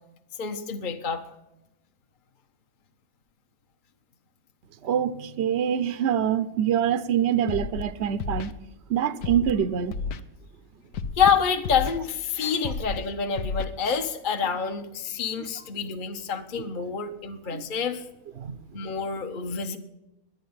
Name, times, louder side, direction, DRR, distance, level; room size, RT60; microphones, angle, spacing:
voice 1, 0.4-1.2 11.2-18.0 18.7-19.8, left 6 dB, 40° left, 0.8 m, -27 dB
voice 2, 4.8-8.5 8.9-10.0 17.5-17.6 18.4-18.6, right 9 dB, 60° right, 0.7 m, -25 dB
Scratching (performance technique), 7.5-7.8 8.2-8.5 9.2-9.5 9.9-10.2 10.9-11.3 11.6-12.0 12.6-13.0 13.4-13.7, left 5 dB, 70° left, 1.2 m, -31 dB
11.0 x 9.3 x 9.3 m
omnidirectional pair, 1.7 m